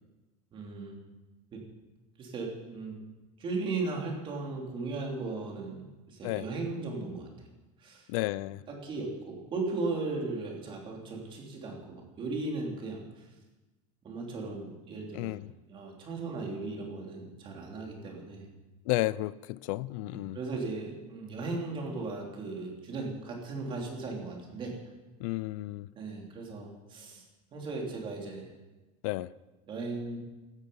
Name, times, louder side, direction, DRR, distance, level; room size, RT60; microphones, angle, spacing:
voice 1, 0.5-1.0 1.5-1.6 2.2-3.0 3.4-7.3 7.8-8.1 8.7-13.3 14.0-15.4 15.7-18.5 20.1-24.8 25.9-27.2 27.5-28.5 29.7-30.2, right 3 dB, 30° right, 3.6 m, -37 dB
voice 2, 8.1-8.6 15.1-15.4 18.9-20.4 25.2-25.9 29.0-29.3, left 18 dB, 80° left, 0.5 m, -32 dB
16.0 x 13.5 x 5.6 m
cardioid pair, 165°, 17 cm